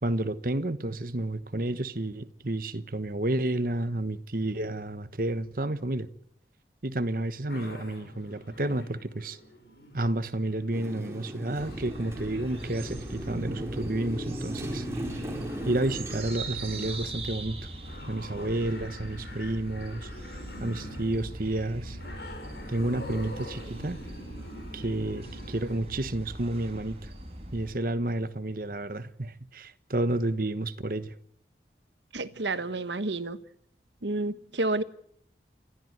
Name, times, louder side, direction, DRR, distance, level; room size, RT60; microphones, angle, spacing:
voice 1, 0.0-6.1 6.8-9.4 9.9-14.9 15.6-17.6 18.1-20.1 20.6-22.0 22.7-24.0 24.7-27.1 27.5-31.1, right 1 dB, 50° right, 1.2 m, -30 dB
sound 1, 7.5-25.8, left 1 dB, 70° left, 7.2 m, -46 dB
Motorcycle, 10.7-16.2, equal, 15° right, 4.4 m, -37 dB
sound 2, 11.6-27.7, right 2 dB, 35° right, 5.1 m, -41 dB
voice 2, 32.1-33.4 34.0-34.8, right 2 dB, 90° right, 1.4 m, -30 dB
30.0 x 14.0 x 8.1 m
head